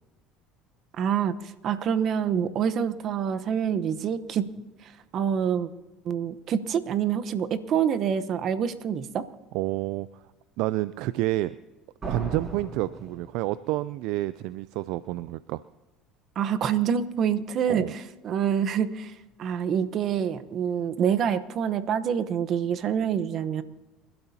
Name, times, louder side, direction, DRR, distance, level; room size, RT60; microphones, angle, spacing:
voice 1, 1.0-1.3 1.6-4.5 5.1-5.7 6.0-9.2 16.4-19.1 19.4-23.6, right 8 dB, 50° right, 12 dB, 1.0 m, -26 dB
voice 2, 9.5-10.2 10.6-11.5 12.1-15.6 17.7-17.9, right 17 dB, 70° right, 16 dB, 0.4 m, -29 dB
sound 1, 12.0-13.8, right 2 dB, 35° right, 5.7 m, -37 dB
30.0 x 12.0 x 2.9 m, 1.1 s
supercardioid pair, 85°, 0 cm